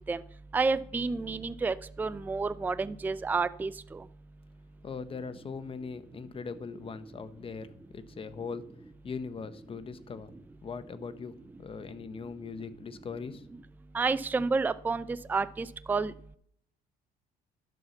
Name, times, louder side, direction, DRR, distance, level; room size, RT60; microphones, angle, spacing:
voice 1, 0.5-4.0 13.9-16.1, right 4 dB, 10° right, 15 dB, 0.4 m, -30 dB
voice 2, 4.8-8.7 9.0-10.3 10.6-13.5, left 5 dB, 35° left, 13 dB, 0.9 m, -40 dB
11.0 x 5.6 x 7.0 m, 0.65 s
cardioid pair, 110°, 17 cm